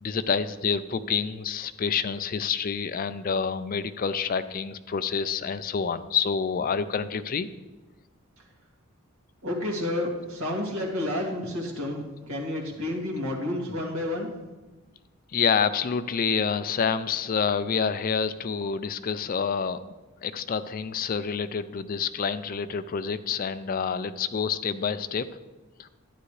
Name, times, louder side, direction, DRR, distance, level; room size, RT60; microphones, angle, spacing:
voice 1, 0.0-7.5 15.3-19.8 20.2-25.3 25.8-25.9, left 6 dB, 40° left, 12 dB, 0.4 m, -28 dB
voice 2, 9.4-14.3, left 1 dB, 70° right, -2 dB, 2.3 m, -30 dB
12.0 x 9.6 x 3.2 m, 1.2 s
head